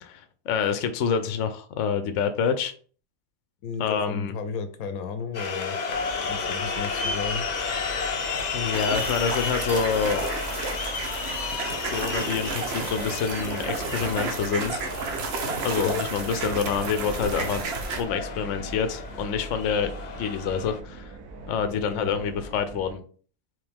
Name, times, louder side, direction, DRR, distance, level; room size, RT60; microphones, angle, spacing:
voice 1, 0.0-2.7 3.8-4.3 8.5-10.3 11.7-14.8 15.6-17.6 18.0-19.9 20.2-21.1 21.5-23.0, left 6 dB, 70° left, 9 dB, 0.9 m, -27 dB
voice 2, 3.6-5.8 6.3-7.4 15.8-16.0 21.7-22.1, left 5 dB, 90° left, 9 dB, 1.2 m, -33 dB
sound 1, 5.3-20.8, left 5 dB, 50° left, 0.5 m, -33 dB
sound 2, 5.9-23.0, right 2 dB, 75° right, 1.2 m, -42 dB
sound 3, 8.7-18.0, right 4 dB, 55° right, 0.9 m, -32 dB
4.8 x 3.1 x 3.5 m, 0.43 s
omnidirectional pair, 1.5 m